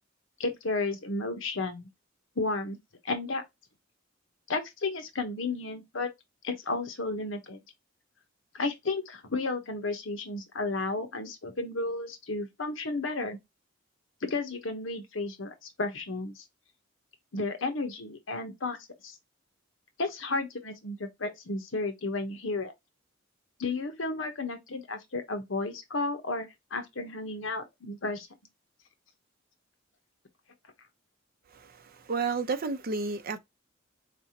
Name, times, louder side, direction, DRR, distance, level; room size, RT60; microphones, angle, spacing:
voice 1, 0.4-1.9 2.4-2.8 3.0-3.4 4.5-6.1 6.4-7.6 8.5-13.4 14.2-16.4 17.3-18.8 19.0-19.2 20.0-22.7 23.6-28.3, left 3 dB, 80° left, 1.1 m, -33 dB
voice 2, 31.5-33.4, right 4 dB, 50° right, 0.6 m, -32 dB
4.1 x 3.4 x 2.8 m
head